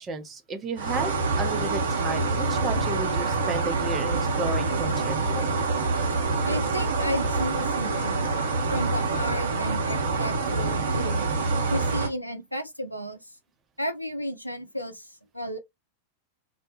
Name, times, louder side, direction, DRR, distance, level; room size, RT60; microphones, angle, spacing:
voice 1, 0.0-5.4, right 3 dB, 25° right, 0.5 m, -33 dB
sound 1, 0.8-12.1, right 3 dB, 65° right, 0.6 m, -26 dB
voice 2, 6.4-8.3 8.7-11.3 11.7-13.3 13.8-15.6, equal, 90° left, 0.3 m, -33 dB
2.1 x 2.0 x 2.9 m
figure-of-eight pair, 90°, 0 cm